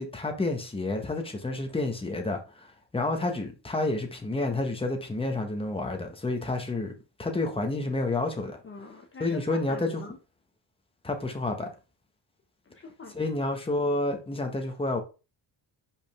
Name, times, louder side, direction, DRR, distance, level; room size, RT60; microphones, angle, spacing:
voice 1, 0.0-2.4 2.9-6.9 7.2-8.6 9.2-10.0 11.0-11.7 13.1-15.0, left 2 dB, 10° left, 1.3 m, -29 dB
voice 2, 8.6-10.2 12.6-13.2, left 3 dB, 30° left, 1.0 m, -42 dB
5.3 x 5.2 x 3.5 m
cardioid pair, 155°, 45 cm